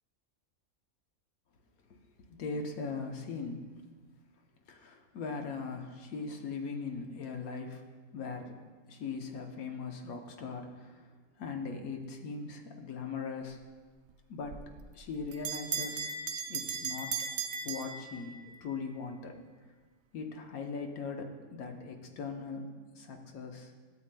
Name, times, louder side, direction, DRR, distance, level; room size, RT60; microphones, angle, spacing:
voice 1, 2.3-3.7 4.7-7.8 8.1-8.5 8.9-11.1 11.4-13.6 14.3-16.1 16.5-17.2 17.6-19.4 20.1-22.7 23.0-23.7, left 4 dB, 90° left, 3 dB, 1.3 m, -40 dB
Bell, 14.5-18.6, right 5 dB, 65° right, 0.8 m, -37 dB
12.5 x 7.7 x 2.2 m, 1.4 s
omnidirectional pair, 1.5 m